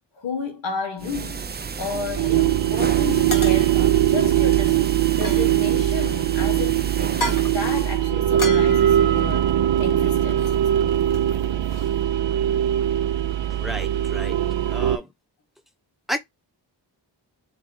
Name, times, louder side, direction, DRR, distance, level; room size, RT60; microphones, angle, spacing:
voice 1, 0.2-9.5 9.8-11.0, left 4 dB, 90° left, 1.4 m, -32 dB
sound 1, 1.0-8.0, right 5 dB, 25° right, 0.4 m, -32 dB
sound 2, 2.2-2.4 3.3-4.0 5.1-5.8 7.1-7.7 8.4-9.9 10.4-10.7 10.9-12.0, left 2 dB, 50° left, 1.3 m, -34 dB
sound 3, 2.2-15.0, right 11 dB, 85° right, 0.5 m, -21 dB
voice 2, 13.6-14.4 14.7-15.1 16.1-16.2, equal, ahead, 0.9 m, -31 dB
3.2 x 3.0 x 3.7 m
wide cardioid pair, 60°, 43 cm